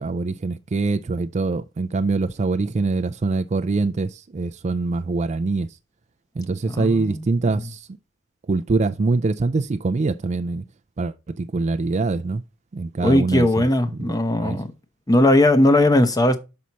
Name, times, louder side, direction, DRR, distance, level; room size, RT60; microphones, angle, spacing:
voice 1, 0.0-5.7 6.4-7.9 8.5-10.6 11.0-12.4 12.7-13.7 14.0-14.1 14.4-14.6, right 3 dB, 35° right, 0.4 m, -24 dB
voice 2, 6.7-7.2 7.6-7.7 13.0-14.7 15.1-16.4, left 1 dB, 20° left, 0.8 m, -18 dB
6.2 x 5.7 x 4.1 m
head